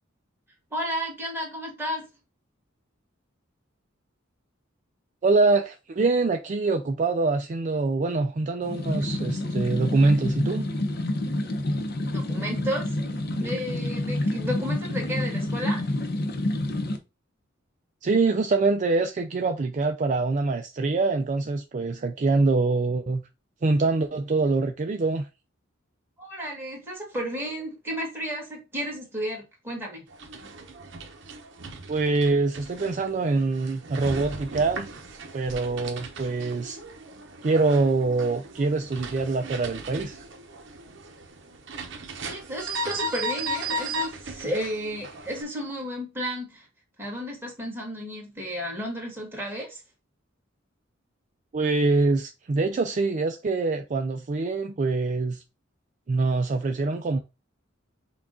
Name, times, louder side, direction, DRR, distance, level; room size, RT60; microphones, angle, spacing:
voice 1, 0.7-2.1 12.0-13.0 13.4-15.9 26.2-30.0 42.2-46.7 47.0-49.8, equal, 10° right, 1.8 m, -33 dB
voice 2, 5.2-10.7 18.0-23.2 23.6-25.3 31.9-34.9 35.3-36.8 37.4-40.2 51.5-55.4 56.1-57.2, right 3 dB, 40° right, 0.4 m, -24 dB
sound 1, 8.6-17.0, left 1 dB, 55° left, 0.7 m, -28 dB
sound 2, 30.1-45.4, right 2 dB, 65° right, 0.8 m, -37 dB
6.0 x 2.4 x 3.7 m
head